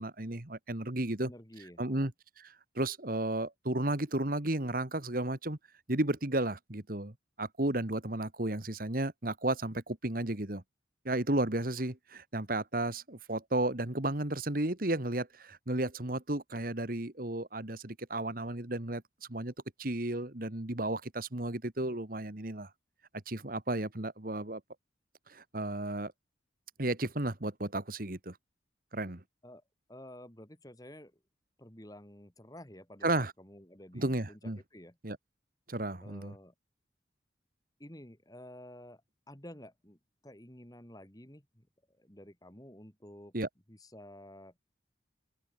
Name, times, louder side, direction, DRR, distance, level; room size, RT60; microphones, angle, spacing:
voice 1, 0.0-1.3 1.8-2.1 2.4-5.6 5.9-10.6 11.1-19.0 19.3-19.5 19.8-22.7 23.3-24.6 25.3-26.1 26.8-28.4 28.9-29.2 33.0-33.3 33.9-34.6 35.0-35.2 35.7-36.3 43.3-43.5, right 1 dB, 50° right, 1.9 m, -33 dB
voice 2, 1.2-2.1 29.4-29.6 29.9-31.2 31.6-35.0 36.0-36.5 37.8-39.0 39.3-40.0 40.2-41.7 42.0-43.3 43.7-44.6, left 1 dB, 20° left, 3.0 m, -51 dB
open air
head